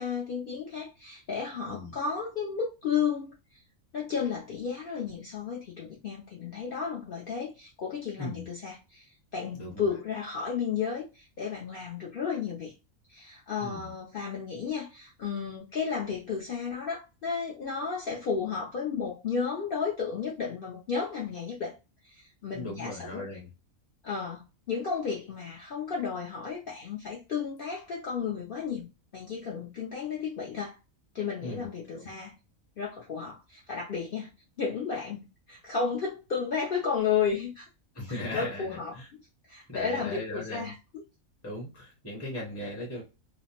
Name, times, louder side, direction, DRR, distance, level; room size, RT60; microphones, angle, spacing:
voice 1, 0.0-3.3 3.9-12.7 13.1-21.8 22.0-23.2 24.0-28.9 29.1-30.8 31.1-32.4 32.8-34.3 34.6-37.7 38.1-39.2 39.5-40.8, left 6 dB, 60° left, 0.6 m, -33 dB
voice 2, 9.5-9.8 13.6-13.9 22.5-23.5 31.4-31.7 31.9-32.1 37.9-39.1 39.7-40.7 41.4-43.0, left 1 dB, 15° left, 0.7 m, -38 dB
2.5 x 2.0 x 2.9 m
omnidirectional pair, 1.4 m